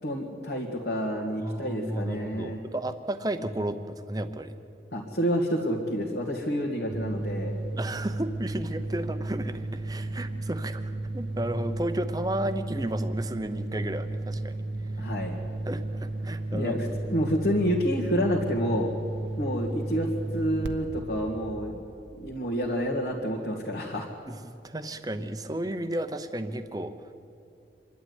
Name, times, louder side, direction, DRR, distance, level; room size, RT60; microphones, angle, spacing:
voice 1, 0.0-2.6 4.9-7.6 15.0-15.4 16.5-18.9 19.4-20.1 20.3-21.8 22.2-24.1, equal, 60° left, -3 dB, 2.0 m, -29 dB
voice 2, 1.4-4.5 7.8-14.6 15.0-15.1 15.7-16.7 24.3-27.1, right 1 dB, 20° right, 9 dB, 0.9 m, -33 dB
sound 1, 6.9-23.2, right 2 dB, 75° right, 1.0 m, -34 dB
26.0 x 11.5 x 9.6 m, 2.6 s
head